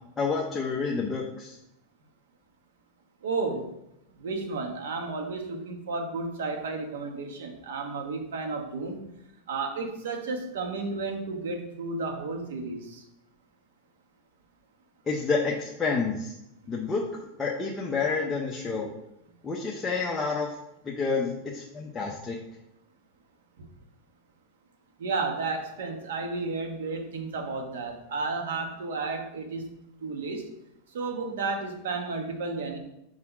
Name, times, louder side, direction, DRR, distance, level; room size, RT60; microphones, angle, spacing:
voice 1, 0.2-1.6 15.1-16.3 16.7-18.9 19.4-20.5 20.8-22.4, left 4 dB, 15° left, -2 dB, 0.7 m, -29 dB
voice 2, 3.2-3.7 4.2-9.0 9.5-13.0 23.6-23.7 25.0-29.7 30.0-30.5 30.9-32.8, right 3 dB, 85° right, 4 dB, 1.3 m, -32 dB
4.8 x 4.2 x 5.9 m, 0.83 s
supercardioid pair, 140°, 0 cm